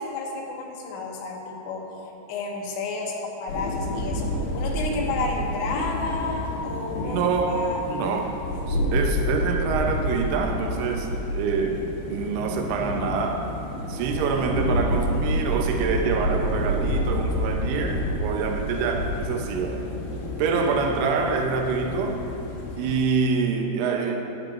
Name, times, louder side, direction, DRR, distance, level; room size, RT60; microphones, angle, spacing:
voice 1, 0.0-1.9 2.3-7.8 8.1-8.3, left 3 dB, 80° left, -1 dB, 3.3 m, -31 dB
sound 1, 3.5-23.0, equal, 65° left, 2.3 m, -29 dB
voice 2, 7.0-8.4 8.7-13.5 13.9-19.9 20.4-22.2 22.8-24.2, right 5 dB, 75° right, 2 dB, 2.7 m, -26 dB
13.5 x 10.0 x 2.6 m, 2.8 s
omnidirectional pair, 4.9 m